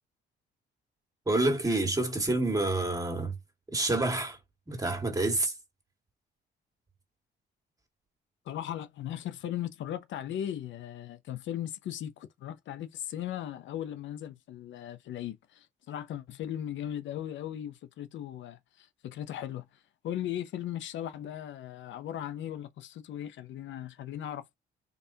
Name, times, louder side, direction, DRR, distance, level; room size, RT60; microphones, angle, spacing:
voice 1, 1.3-3.3 3.7-4.4 4.7-5.5, right 2 dB, 15° right, 1.7 m, -28 dB
voice 2, 8.5-19.7 20.0-24.5, left 11 dB, 70° left, 0.6 m, -38 dB
4.0 x 3.4 x 2.7 m
cardioid pair, 90°, 20 cm